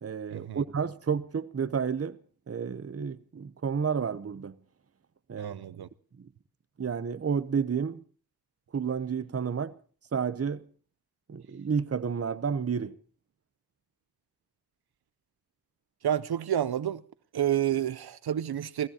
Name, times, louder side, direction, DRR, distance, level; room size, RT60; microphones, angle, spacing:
voice 1, 0.0-2.2 2.5-4.6 5.3-5.5 6.2-6.3 6.8-8.0 8.7-9.7 10.1-10.6 11.3-12.9, right 6 dB, 40° right, 0.8 m, -31 dB
voice 2, 5.4-5.9 16.0-17.0 17.3-18.9, right 10 dB, 80° right, 0.6 m, -29 dB
29.0 x 15.5 x 2.8 m
wide cardioid pair, 70°, 38 cm